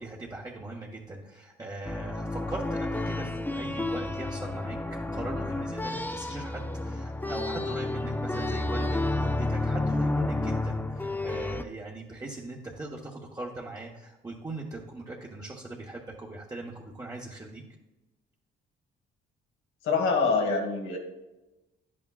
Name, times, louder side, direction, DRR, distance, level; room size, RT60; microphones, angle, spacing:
voice 1, 0.0-17.6, right 2 dB, 20° right, -3 dB, 1.2 m, -40 dB
sound 1, 1.9-11.6, left 2 dB, 10° left, 0.6 m, -31 dB
voice 2, 19.8-21.0, left 4 dB, 80° left, 3 dB, 1.8 m, -25 dB
10.5 x 8.5 x 2.4 m, 1.0 s
cardioid pair, 90°, 20 cm